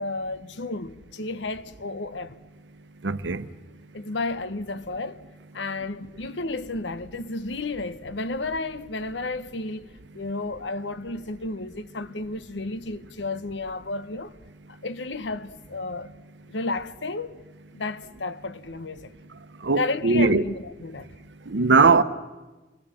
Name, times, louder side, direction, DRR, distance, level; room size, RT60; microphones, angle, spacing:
voice 1, 0.0-2.4 3.9-5.2 5.5-14.3 14.7-16.1 16.5-17.4 17.7-19.1 19.8-21.1, left 3 dB, 85° left, 1.0 m, -32 dB
voice 2, 3.0-3.4 19.6-20.4 21.5-22.0, right 4 dB, 80° right, 0.9 m, -19 dB
26.5 x 20.0 x 7.6 m
head